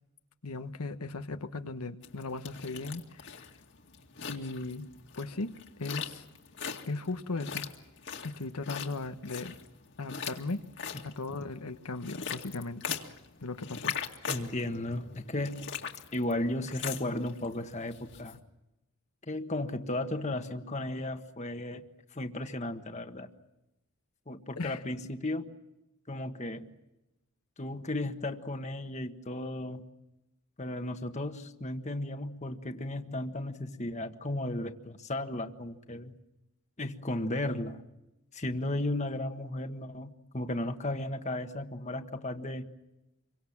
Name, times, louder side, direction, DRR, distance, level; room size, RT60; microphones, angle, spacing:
voice 1, 0.4-3.5 4.3-4.9 5.2-6.3 6.9-7.6 8.2-9.6 10.0-10.6 11.0-13.0 13.4-13.9 24.6-24.8, left 3 dB, 85° left, 8 dB, 1.2 m, -37 dB
sound 1, 2.0-18.3, left 7 dB, 55° left, 2.2 m, -41 dB
voice 2, 14.3-15.6 16.1-18.4 19.3-21.8 22.1-23.3 24.3-25.5 26.1-26.7 27.6-29.8 30.6-36.1 36.8-37.8 38.3-42.7, left 1 dB, 30° left, 7 dB, 1.4 m, -35 dB
28.0 x 24.0 x 7.3 m, 0.94 s
head